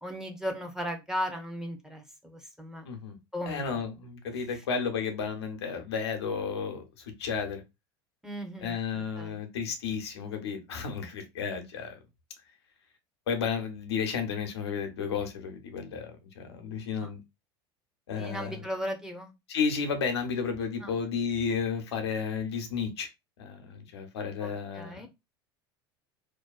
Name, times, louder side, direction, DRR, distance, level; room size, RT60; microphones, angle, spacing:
voice 1, 0.0-2.8 3.3-3.8 4.5-4.6 8.2-9.4 17.0-17.1 18.1-19.3 20.8-21.0 24.4-25.1, equal, 5° right, 0.7 m, -37 dB
voice 2, 2.8-3.2 3.5-7.6 8.6-12.0 13.3-17.2 18.1-18.6 19.5-23.1 23.4-25.1, left 6 dB, 80° left, 0.6 m, -32 dB
2.5 x 2.2 x 2.3 m
hypercardioid pair, 85°, 13 cm